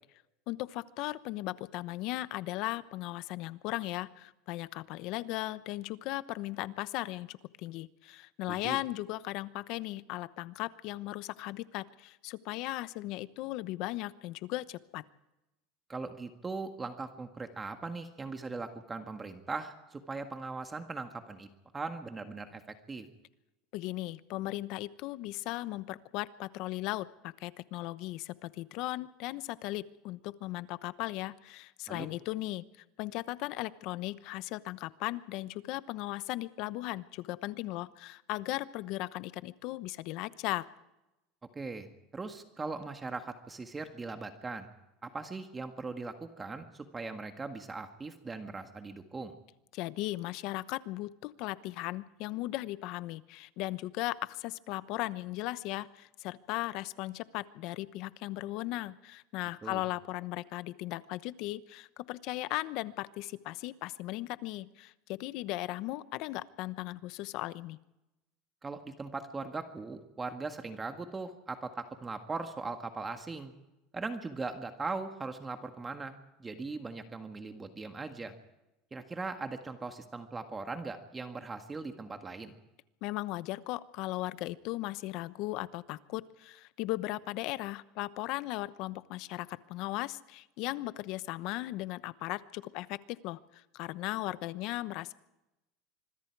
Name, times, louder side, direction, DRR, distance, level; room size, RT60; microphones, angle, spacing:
voice 1, 0.5-15.0 23.7-32.7 33.0-40.7 49.7-67.8 83.0-95.1, left 18 dB, 60° left, 15 dB, 0.9 m, -37 dB
voice 2, 8.5-8.8 15.9-23.1 31.9-32.1 41.6-44.7 45.0-49.4 59.6-59.8 68.6-73.5 73.9-78.4 78.9-82.5, right 3 dB, 15° right, 6 dB, 1.7 m, -40 dB
25.5 x 22.0 x 4.7 m, 0.96 s
supercardioid pair, 130°, 0 cm